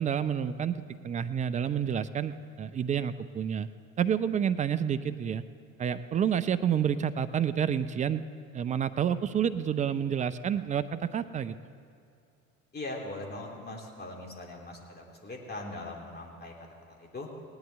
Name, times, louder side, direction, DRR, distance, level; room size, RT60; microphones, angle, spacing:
voice 1, 0.0-3.7 4.0-5.4 5.8-8.2 8.5-11.6, right 8 dB, 20° right, 12 dB, 0.3 m, -29 dB
voice 2, 12.7-17.3, left 2 dB, 25° left, 0 dB, 2.8 m, -41 dB
18.5 x 11.0 x 3.4 m, 2.5 s
hypercardioid pair, 65°, 42 cm